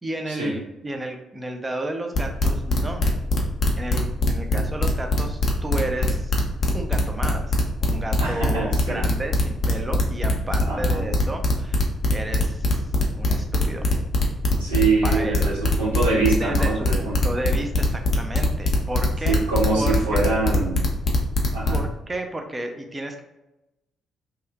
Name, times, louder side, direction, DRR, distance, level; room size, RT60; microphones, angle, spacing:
voice 1, 0.0-3.0 3.8-6.3 6.7-11.9 12.1-13.9 15.0-15.5 16.4-19.4 19.7-20.2 21.7-23.2, right 1 dB, 20° right, 4 dB, 0.5 m, -32 dB
sound 1, 2.2-21.8, left 2 dB, 50° left, 0.6 m, -21 dB
voice 2, 8.2-9.1 10.6-11.1 14.6-17.1 19.3-20.8 21.5-21.8, right 3 dB, 90° right, -9 dB, 0.9 m, -24 dB
2.8 x 2.4 x 2.3 m, 0.95 s
figure-of-eight pair, 45°, 0 cm